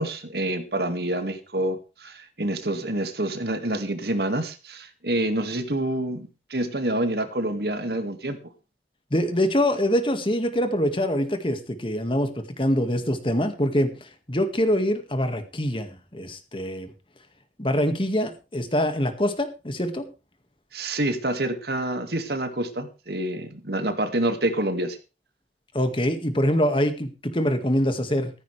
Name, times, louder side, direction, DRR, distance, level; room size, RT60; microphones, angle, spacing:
voice 1, 0.0-8.4 20.7-25.0, right 1 dB, 60° right, 8 dB, 2.1 m, -27 dB
voice 2, 9.1-16.9 17.6-20.1 25.7-28.3, equal, 30° left, 8 dB, 1.9 m, -24 dB
15.0 x 15.0 x 3.4 m, 0.31 s
head